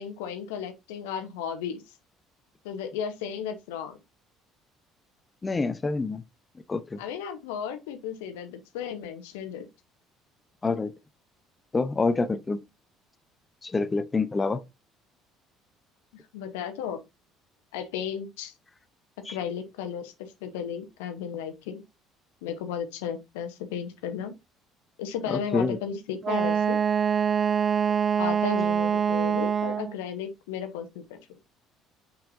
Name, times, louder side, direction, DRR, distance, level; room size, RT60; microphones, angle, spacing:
voice 1, 0.0-1.8 2.6-4.0 7.0-9.7 16.3-17.0 17.7-18.5 19.3-20.1 20.4-21.8 22.4-24.3 25.0-26.8 28.2-31.2, left 8 dB, 75° left, 1.0 m, -34 dB
voice 2, 5.4-6.2 6.7-7.0 10.6-10.9 11.7-12.6 13.6-14.6 19.3-19.4 25.3-25.8, left 3 dB, 25° left, 0.7 m, -27 dB
Wind instrument woodwind instrument, 26.2-30.0, right 7 dB, 40° right, 0.3 m, -24 dB
6.7 x 5.6 x 2.7 m
hypercardioid pair, 60°, 0 cm